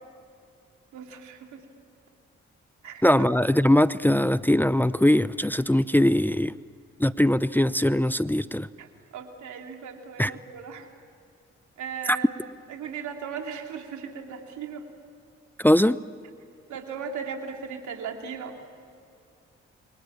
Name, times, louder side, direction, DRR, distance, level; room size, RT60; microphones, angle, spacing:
voice 1, 0.9-1.6 2.8-3.3 8.8-8.9 9.1-10.9 11.8-12.3 12.7-14.8 16.7-18.5, right 6 dB, 80° right, 3 dB, 2.9 m, -37 dB
voice 2, 3.0-6.6 7.0-8.7 10.2-10.3 12.1-12.2 15.6-16.0, left 1 dB, 5° left, 15 dB, 0.7 m, -21 dB
29.5 x 24.5 x 7.4 m, 2.4 s
supercardioid pair, 45°, 29 cm